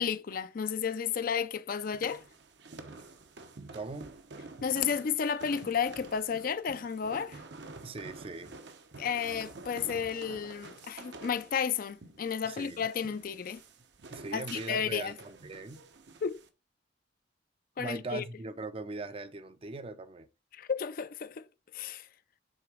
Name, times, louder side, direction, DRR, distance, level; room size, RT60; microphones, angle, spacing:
voice 1, 0.0-2.2 4.6-7.4 9.0-13.6 14.3-15.1 16.2-16.4 17.8-18.2 20.5-21.5 21.7-22.1, left 7 dB, 50° left, 0.4 m, -32 dB
sound 1, 1.8-16.5, right 3 dB, 65° right, 0.9 m, -49 dB
voice 2, 3.7-4.1 7.8-8.5 12.4-12.8 14.1-15.8 17.8-20.3, right 3 dB, 30° right, 0.5 m, -40 dB
6.3 x 3.9 x 4.8 m
head